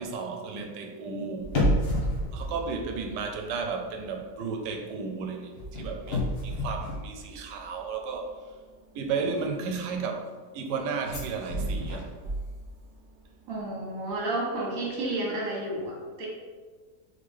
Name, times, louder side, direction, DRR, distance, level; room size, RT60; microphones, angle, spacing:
voice 1, 0.0-1.5 2.3-5.5 5.8-8.3 8.9-10.2 10.5-12.1, right 5 dB, 90° right, 4 dB, 1.2 m, -33 dB
sound 1, 1.4-3.7 4.0-4.3 5.6-7.8 11.0-12.9 13.2-13.3, equal, 40° left, 1.0 m, -30 dB
voice 2, 13.5-16.3, right 2 dB, 55° right, -4 dB, 1.6 m, -31 dB
4.0 x 3.3 x 3.6 m, 1.5 s
omnidirectional pair, 1.8 m